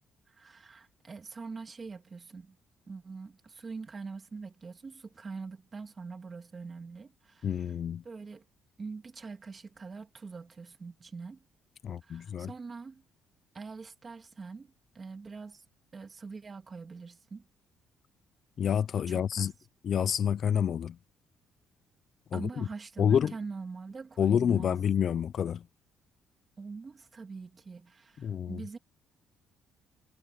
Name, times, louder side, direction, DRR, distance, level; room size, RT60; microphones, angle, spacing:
voice 1, 0.3-2.6 2.9-7.5 8.0-8.4 8.8-11.4 12.0-13.0 13.5-15.6 15.9-17.4 19.1-19.5 22.3-24.8 26.6-28.8, right 4 dB, 25° right, 2.7 m, -43 dB
voice 2, 7.4-8.0 11.8-12.5 18.6-19.5 19.8-21.0 22.3-22.7 23.0-23.3 24.2-25.7 28.2-28.6, left 8 dB, 40° left, 0.4 m, -28 dB
cardioid pair, 165°, 0 cm